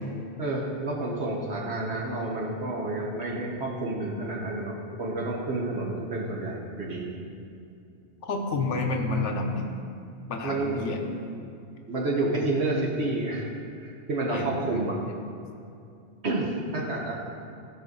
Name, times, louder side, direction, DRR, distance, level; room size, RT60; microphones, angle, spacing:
voice 1, 0.4-7.1 10.4-10.8 11.9-13.5 13.8-15.0 16.2-17.1, right 2 dB, 70° right, -3 dB, 1.5 m, -29 dB
voice 2, 8.3-9.7 10.3-11.0 14.3-15.0, left 3 dB, 90° left, 3 dB, 1.3 m, -29 dB
14.5 x 5.4 x 4.0 m, 2.5 s
omnidirectional pair, 1.2 m